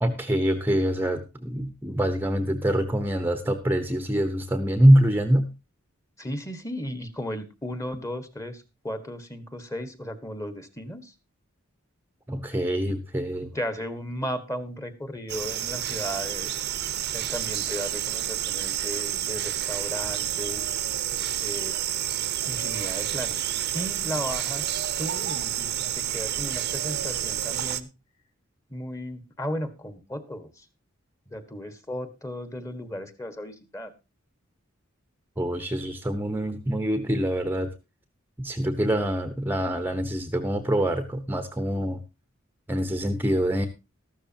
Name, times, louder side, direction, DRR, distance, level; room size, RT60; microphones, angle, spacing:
voice 1, 0.0-5.5 12.3-13.5 35.4-37.7 38.4-42.0 42.7-43.7, equal, 10° right, 8 dB, 1.0 m, -24 dB
voice 2, 6.2-11.1 12.8-13.0 13.4-16.6 17.1-20.8 21.4-21.8 22.4-23.4 23.7-27.9 28.7-30.6 31.3-33.9 38.9-39.0, equal, 15° left, 11 dB, 1.6 m, -35 dB
sound 1, 15.3-27.8, right 11 dB, 55° right, 0.9 m, -29 dB
13.5 x 13.0 x 2.9 m, 0.27 s
head